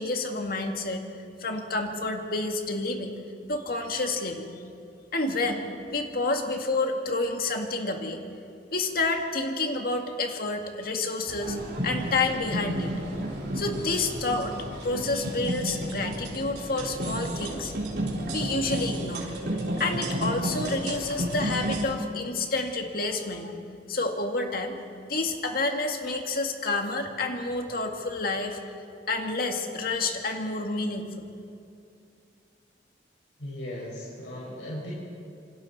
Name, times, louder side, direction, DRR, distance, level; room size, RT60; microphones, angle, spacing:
voice 1, 0.0-3.2 3.5-4.5 5.1-8.2 8.7-11.6 11.8-12.9 13.5-14.6 14.8-17.7 18.3-19.3 19.8-23.5 23.9-24.8 25.1-28.6 29.1-31.3, left 3 dB, 55° left, 3 dB, 1.9 m, -29 dB
sound 1, 11.3-21.8, right 1 dB, 60° right, 4.5 m, -32 dB
voice 2, 33.4-34.9, left 1 dB, 85° left, -6 dB, 5.3 m, -37 dB
27.5 x 25.0 x 4.2 m, 2.5 s
head